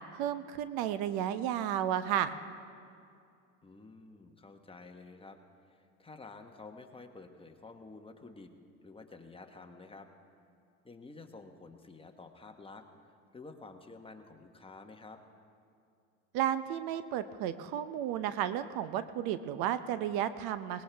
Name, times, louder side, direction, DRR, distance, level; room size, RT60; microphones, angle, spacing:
voice 1, 0.1-2.3 16.3-20.8, right 10 dB, 60° right, 12 dB, 0.8 m, -33 dB
voice 2, 3.6-5.4 5.7-8.5 8.8-10.1 10.8-12.8 13.3-15.2, left 3 dB, 15° left, 4 dB, 1.2 m, -50 dB
20.5 x 19.0 x 3.4 m, 2.4 s
supercardioid pair, 105°, 42 cm